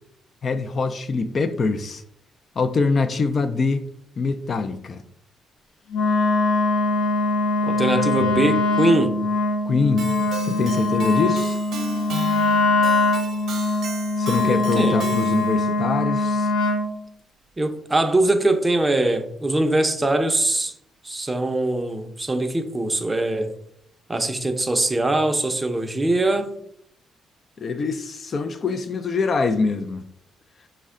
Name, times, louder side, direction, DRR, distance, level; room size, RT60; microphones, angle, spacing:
voice 1, 0.4-2.0 2.6-3.9 4.2-5.0 8.1-8.3 9.7-10.1 10.4-11.6 14.2-16.5 27.6-30.0, left 4 dB, 45° left, 0.3 m, -24 dB
Wind instrument woodwind instrument, 5.9-16.9, left 2 dB, 75° left, 0.7 m, -22 dB
voice 2, 7.7-9.2 14.4-15.1 17.6-20.7 21.0-23.5 24.1-26.5, right 2 dB, 20° right, 0.5 m, -22 dB
Keyboard (musical), 10.0-15.6, right 3 dB, 70° right, 0.8 m, -36 dB
5.4 x 2.1 x 3.6 m
cardioid pair, 90°, 0 cm